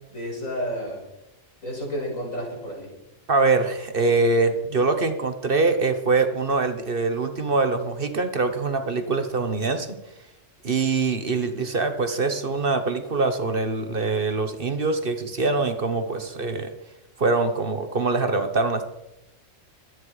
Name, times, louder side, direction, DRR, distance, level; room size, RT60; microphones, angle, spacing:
voice 1, 0.1-1.0 1.6-2.9, equal, 85° left, -2 dB, 6.4 m, -31 dB
voice 2, 3.3-9.9 10.6-16.7 17.2-18.9, right 3 dB, 45° right, 8 dB, 1.4 m, -23 dB
23.5 x 9.8 x 5.0 m, 0.91 s
omnidirectional pair, 1.3 m